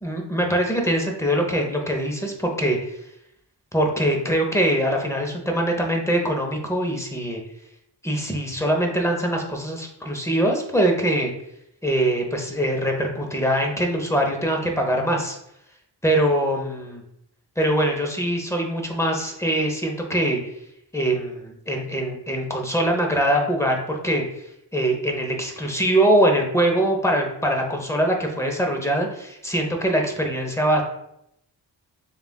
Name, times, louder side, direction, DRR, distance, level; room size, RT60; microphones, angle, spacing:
voice 1, 0.0-2.9 3.7-7.4 8.0-11.3 11.8-15.4 16.0-17.0 17.6-20.4 20.9-24.2 24.7-30.8, right 1 dB, 5° left, 2 dB, 0.7 m, -23 dB
6.9 x 2.4 x 2.2 m, 0.79 s
wide cardioid pair, 60°, 44 cm